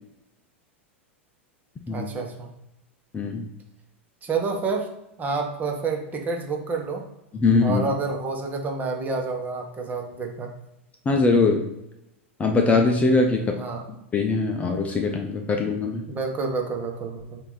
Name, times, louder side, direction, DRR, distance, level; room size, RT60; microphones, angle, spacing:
voice 1, 1.9-2.5 4.2-4.9 5.2-7.0 7.6-10.5 13.5-13.8 16.1-17.4, right 4 dB, 25° right, 2 dB, 1.3 m, -29 dB
voice 2, 3.1-3.5 7.3-7.8 11.1-11.6 12.4-13.6 14.1-16.0, left 3 dB, 20° left, 3 dB, 0.7 m, -21 dB
8.0 x 2.9 x 4.0 m, 0.87 s
hypercardioid pair, 95°, 7 cm